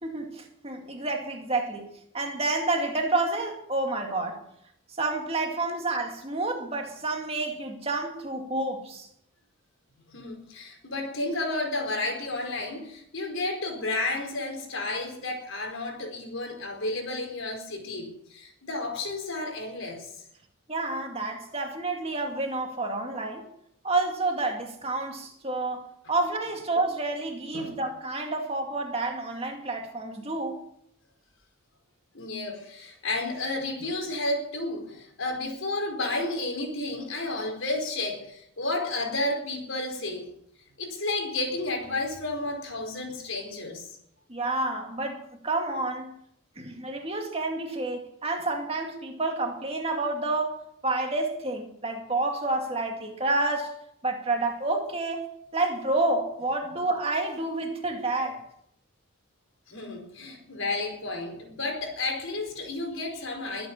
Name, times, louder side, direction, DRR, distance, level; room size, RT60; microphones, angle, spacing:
voice 1, 0.0-1.9 2.1-4.4 5.0-9.1 20.7-23.5 23.8-25.8 26.1-30.6 44.3-46.1 46.6-53.7 54.0-55.3 55.5-58.4, right 2 dB, 30° right, 2.3 m, -29 dB
voice 2, 10.1-20.1 27.5-27.7 32.1-40.3 40.8-44.0 59.7-63.7, left 2 dB, 70° left, 4.5 m, -32 dB
22.0 x 8.6 x 7.2 m
head